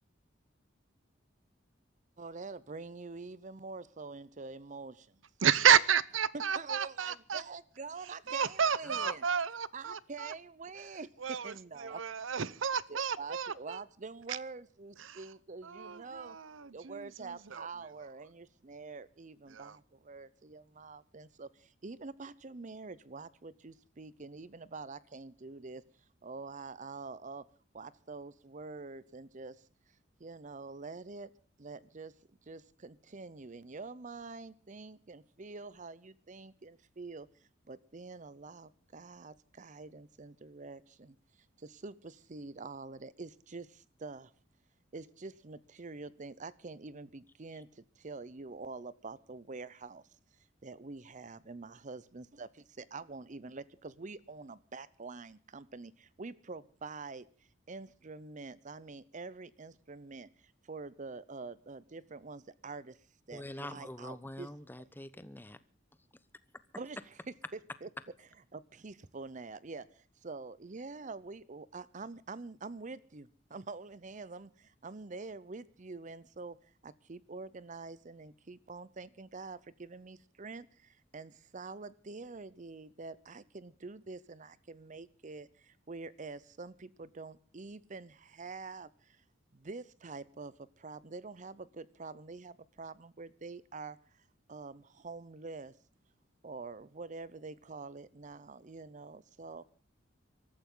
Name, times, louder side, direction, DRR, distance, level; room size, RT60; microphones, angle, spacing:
voice 1, 2.2-5.2 6.3-9.2 9.7-12.0 12.7-16.4 16.7-25.8 26.2-27.5 27.7-29.6 30.2-31.3 31.6-32.1 32.5-37.3 37.7-41.2 41.6-44.3 44.9-50.0 50.6-52.5 52.8-57.3 57.7-63.0 63.3-64.5 66.8-67.1 67.8-67.9 68.5-89.2 89.5-95.8 96.4-99.6, right 3 dB, 40° right, 0.7 m, -46 dB
voice 2, 5.4-7.4 8.3-10.3 11.2-11.5 11.8-13.8 14.3-14.4 15.0-15.2 15.6-17.7 19.5-19.8, right 7 dB, 90° right, 0.8 m, -31 dB
voice 3, 63.3-65.6, left 1 dB, 10° left, 1.0 m, -44 dB
24.0 x 14.0 x 3.8 m
head